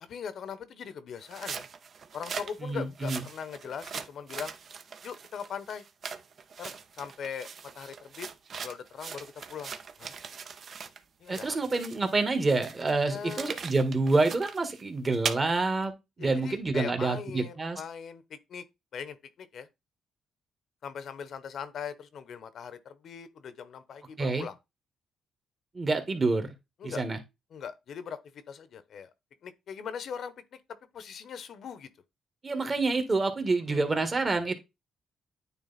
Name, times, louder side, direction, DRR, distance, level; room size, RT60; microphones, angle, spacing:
voice 1, 0.0-1.7 2.1-4.5 5.0-5.8 6.6-7.5 7.7-8.3 8.6-9.7 10.0-10.1 11.2-11.6 13.1-13.6 16.2-18.6 18.9-19.7 20.8-24.5 26.8-27.0 27.5-29.1 29.4-30.6 30.9-31.9 33.7-33.9, left 7 dB, 65° left, 0.9 m, -40 dB
sound 1, 1.2-11.0 11.3-15.4, right 6 dB, 50° right, 0.9 m, -40 dB
voice 2, 2.6-3.2 11.3-15.9 16.2-17.8 24.2-24.5 25.7-26.5 26.8-27.2 32.4-34.6, right 3 dB, 30° right, 1.7 m, -27 dB
9.3 x 3.3 x 4.1 m
cardioid pair, 90°, 0 cm